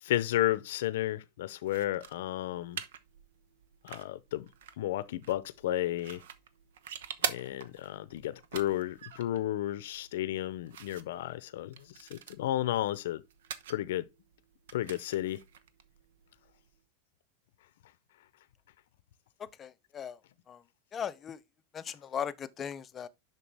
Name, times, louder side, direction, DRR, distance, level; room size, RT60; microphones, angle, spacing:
voice 1, 0.0-2.8 3.8-4.5 4.8-6.2 7.2-13.2 13.7-14.1 14.7-15.4, left 14 dB, 70° left, 0.6 m, -32 dB
sound 1, 1.6-16.8, right 9 dB, 90° right, 0.9 m, -45 dB
voice 2, 19.4-20.2 20.5-20.6 20.9-21.4 21.7-23.1, left 8 dB, 20° left, 0.5 m, -38 dB
7.1 x 5.9 x 3.4 m
supercardioid pair, 170°, 0 cm